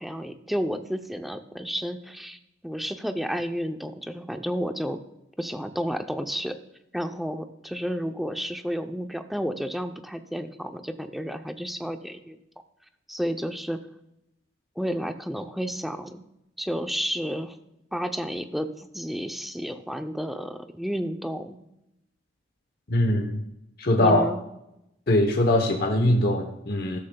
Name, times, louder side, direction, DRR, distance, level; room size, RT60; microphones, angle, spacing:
voice 1, 0.0-2.4 2.6-5.0 5.4-6.6 6.9-12.4 13.1-13.8 14.8-16.2 16.6-17.6 17.9-21.6 24.0-24.4, equal, ahead, 7 dB, 0.5 m, -31 dB
voice 2, 22.9-23.4 23.8-24.3 25.1-27.0, left 1 dB, 50° left, 3 dB, 0.9 m, -22 dB
13.5 x 13.0 x 2.3 m, 0.85 s
head